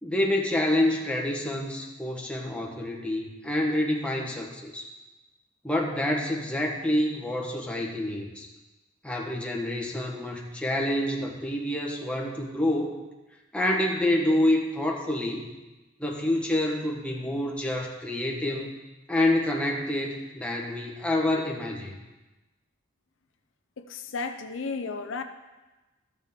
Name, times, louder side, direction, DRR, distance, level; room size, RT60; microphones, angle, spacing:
voice 1, 0.0-4.8 5.6-8.5 9.0-12.9 13.5-15.4 16.0-18.7 19.1-21.9, left 1 dB, 5° left, -1 dB, 1.1 m, -27 dB
voice 2, 23.8-25.2, left 4 dB, 75° left, 6 dB, 0.6 m, -33 dB
13.5 x 6.5 x 3.6 m, 1.1 s
head